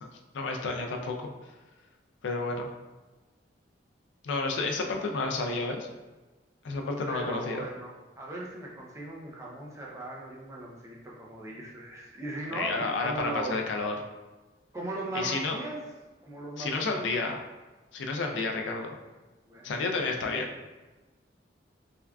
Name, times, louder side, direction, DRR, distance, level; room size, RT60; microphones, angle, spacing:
voice 1, 0.0-1.3 2.2-2.7 4.2-5.9 6.6-7.6 12.5-13.9 15.1-15.6 16.6-17.4 17.9-18.9 19.6-20.5, left 3 dB, 80° left, 3 dB, 0.4 m, -31 dB
voice 2, 7.1-13.6 14.7-15.8 16.2-17.1 19.5-19.7, right 2 dB, 15° right, -3 dB, 0.4 m, -38 dB
3.4 x 2.3 x 2.3 m, 1.2 s
head